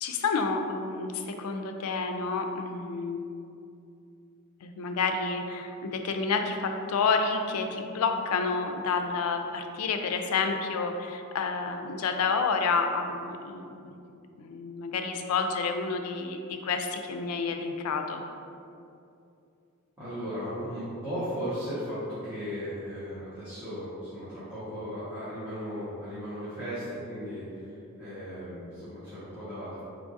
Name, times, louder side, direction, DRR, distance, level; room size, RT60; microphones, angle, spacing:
voice 1, 0.0-3.2 4.6-14.0 14.4-18.2, left 4 dB, 85° left, 5 dB, 0.4 m, -29 dB
voice 2, 20.0-29.8, equal, 10° right, -16 dB, 1.4 m, -36 dB
4.5 x 3.5 x 2.6 m, 2.6 s
head